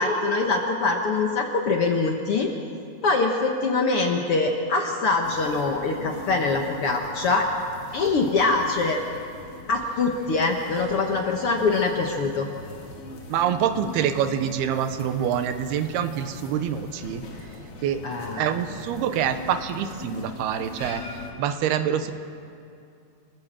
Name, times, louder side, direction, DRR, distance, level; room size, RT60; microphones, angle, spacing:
voice 1, 0.0-2.5 3.0-7.5 7.9-9.0 9.7-12.5 18.0-18.6, left 3 dB, 70° left, 2 dB, 1.3 m, -23 dB
sound 1, 5.2-21.3, left 3 dB, 45° left, 2.5 m, -41 dB
voice 2, 13.3-17.2 17.8-18.0 18.3-21.0 21.4-22.1, right 9 dB, 90° right, 9 dB, 3.0 m, -26 dB
30.0 x 14.5 x 7.5 m, 2.5 s
omnidirectional pair, 4.5 m